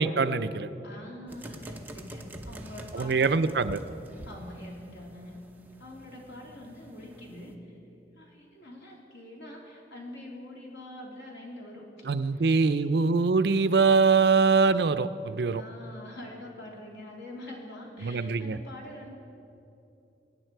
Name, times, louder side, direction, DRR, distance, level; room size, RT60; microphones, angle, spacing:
voice 1, 0.0-0.7 2.9-3.8 12.0-15.6 18.0-18.6, right 4 dB, 65° right, 13 dB, 0.5 m, -23 dB
voice 2, 0.8-3.5 4.2-5.4 5.8-7.7 8.2-11.9 12.3-13.0 15.5-19.1, left 1 dB, 80° left, -2 dB, 2.9 m, -45 dB
sound 1, 1.3-7.6, right 1 dB, 10° right, 0.8 m, -46 dB
23.5 x 9.7 x 4.6 m, 2.8 s
head